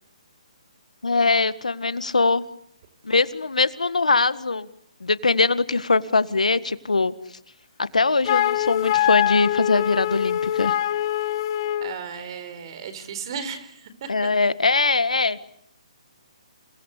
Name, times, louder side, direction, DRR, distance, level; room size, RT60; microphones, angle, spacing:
voice 1, 1.0-2.4 3.0-4.7 5.0-7.1 7.8-10.7 14.1-15.4, left 3 dB, 90° left, 13 dB, 1.8 m, -22 dB
Wind instrument woodwind instrument, 8.2-12.0, left 12 dB, 40° left, 1.4 m, -23 dB
voice 2, 11.8-14.3, right 6 dB, 45° right, 13 dB, 4.5 m, -35 dB
29.5 x 22.5 x 8.5 m, 0.72 s
hypercardioid pair, 150°, 4 cm